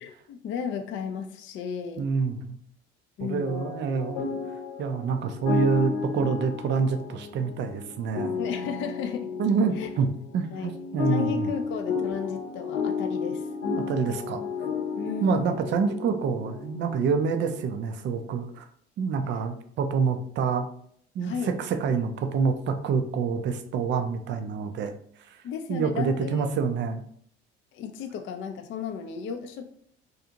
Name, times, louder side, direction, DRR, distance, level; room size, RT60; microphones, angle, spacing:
voice 1, 0.0-2.1 3.2-3.7 8.4-9.3 9.8-9.9 10.5-10.7 11.1-13.5 15.0-15.6 21.2-21.5 25.4-26.5 27.7-29.7, left 7 dB, 35° left, 6 dB, 0.4 m, -34 dB
voice 2, 2.0-2.6 3.2-4.2 4.8-8.3 9.4-10.1 10.3-11.5 13.9-14.4 15.2-18.7 19.0-20.7 21.1-24.9 25.2-25.4 25.7-27.0, right 5 dB, 35° right, 7 dB, 0.4 m, -27 dB
sound 1, 3.4-17.7, left 5 dB, 75° left, 0.8 m, -33 dB
2.5 x 2.4 x 2.8 m, 0.63 s
hypercardioid pair, 60°, 34 cm